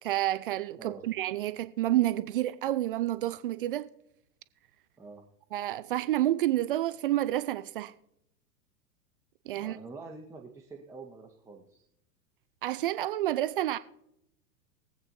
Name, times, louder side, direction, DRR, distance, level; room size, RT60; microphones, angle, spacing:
voice 1, 0.0-3.9 5.5-7.9 9.5-9.8 12.6-13.8, right 14 dB, 35° right, 0.4 m, -29 dB
voice 2, 9.6-11.8, right 3 dB, 5° right, 1.1 m, -46 dB
21.5 x 8.1 x 2.7 m
figure-of-eight pair, 95°, 48 cm